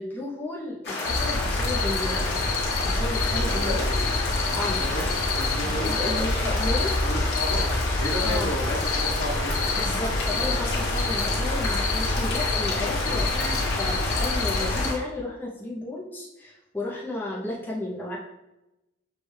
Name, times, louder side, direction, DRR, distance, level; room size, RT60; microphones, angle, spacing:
voice 1, 0.0-2.6 2.8-3.9 4.5-4.8 5.8-7.0 8.2-8.5 9.8-18.2, left 2 dB, 10° left, -4 dB, 0.4 m, -33 dB
sound 1, 0.8-14.9, left 2 dB, 55° left, 1.1 m, -30 dB
sound 2, 1.0-14.9, left 2 dB, 90° left, 0.5 m, -27 dB
voice 2, 3.3-4.0 4.5-5.0 5.3-6.3 6.7-7.6 8.0-9.8, equal, 70° left, -3 dB, 1.3 m, -33 dB
6.2 x 2.1 x 3.1 m, 0.96 s
head